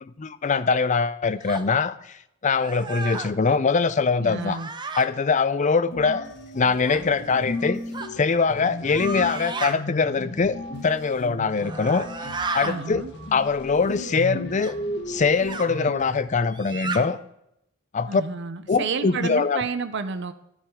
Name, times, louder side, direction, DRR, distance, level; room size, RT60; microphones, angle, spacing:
voice 1, 0.0-2.2 2.4-4.6 5.0-6.2 6.5-7.8 8.2-10.6 10.8-12.1 12.5-13.0 13.3-14.7 15.1-17.2 17.9-18.2 18.7-19.6, left 4 dB, 35° left, 0.5 m, -23 dB
sound 1, 1.5-1.7 2.5-3.3 4.4-5.1 6.9-7.0 7.9-8.1 8.8-9.7 11.5-12.8 14.6-14.7 15.5-15.7 16.5-17.0, right 4 dB, 20° right, 0.7 m, -33 dB
voice 2, 4.2-4.7 12.6-13.1 18.1-20.3, right 5 dB, 55° right, 0.6 m, -30 dB
sound 2, 5.9-16.2, left 1 dB, 55° left, 2.1 m, -35 dB
12.0 x 10.0 x 3.6 m
head